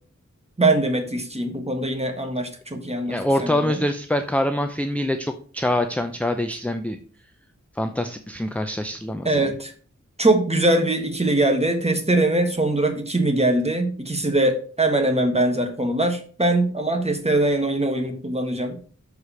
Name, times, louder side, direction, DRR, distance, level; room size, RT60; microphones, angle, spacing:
voice 1, 0.6-3.8 9.2-9.7 10.2-18.8, right 2 dB, 20° right, 4 dB, 1.5 m, -22 dB
voice 2, 3.1-7.0 7.7-9.5, left 1 dB, 5° left, 7 dB, 0.6 m, -25 dB
6.7 x 4.8 x 5.6 m, 0.43 s
wide cardioid pair, 75°, 29 cm